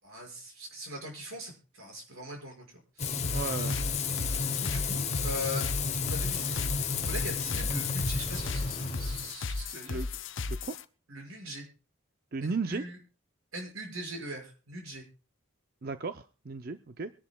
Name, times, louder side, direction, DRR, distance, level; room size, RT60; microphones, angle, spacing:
voice 1, 0.0-2.6 3.0-3.4 4.6-5.7 6.0-10.0 11.1-11.7 12.4-13.0 13.5-15.0, equal, 90° right, 1 dB, 5.9 m, -41 dB
Frying (food), 3.0-9.3, left 5 dB, 30° left, 0.9 m, -32 dB
sound 1, 3.2-10.8, left 3 dB, 65° left, 0.7 m, -36 dB
voice 2, 3.3-3.8 9.8-10.1 10.5-10.8 12.3-12.9 15.8-17.1, right 4 dB, 45° right, 9 dB, 0.6 m, -35 dB
23.5 x 11.0 x 2.3 m, 0.35 s
head